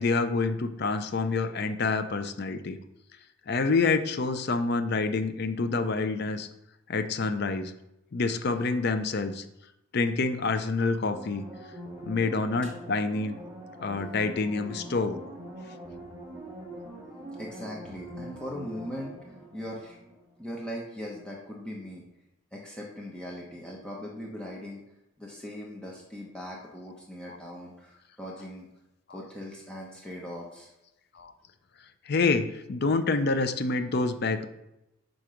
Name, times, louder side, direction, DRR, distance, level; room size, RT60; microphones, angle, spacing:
voice 1, 0.0-2.8 3.5-6.5 6.9-7.7 8.1-9.4 9.9-11.5 12.0-13.4 13.8-15.2 32.1-34.5, left 3 dB, 50° left, 9 dB, 0.5 m, -27 dB
sound 1, 11.1-20.5 20.8-20.9, right 1 dB, 15° right, 1.2 m, -43 dB
voice 2, 17.4-20.0 20.4-22.0 22.5-24.8 25.2-28.7 29.1-30.7, equal, 5° left, -3 dB, 0.8 m, -40 dB
5.9 x 3.9 x 4.9 m, 0.88 s
head